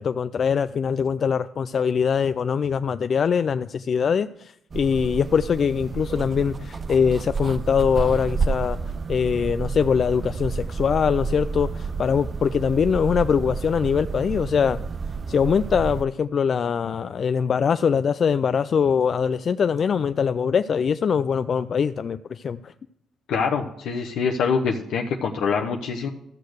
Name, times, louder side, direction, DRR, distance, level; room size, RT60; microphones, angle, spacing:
voice 1, 0.0-8.8 9.1-14.8 15.3-22.7, left 6 dB, 50° left, 12 dB, 0.4 m, -22 dB
sound 1, 4.7-16.0, right 4 dB, 35° right, 0.5 m, -30 dB
voice 2, 23.3-26.1, left 5 dB, 80° left, 1 dB, 1.0 m, -25 dB
13.5 x 6.6 x 6.5 m, 0.79 s
cardioid pair, 90°, 0 cm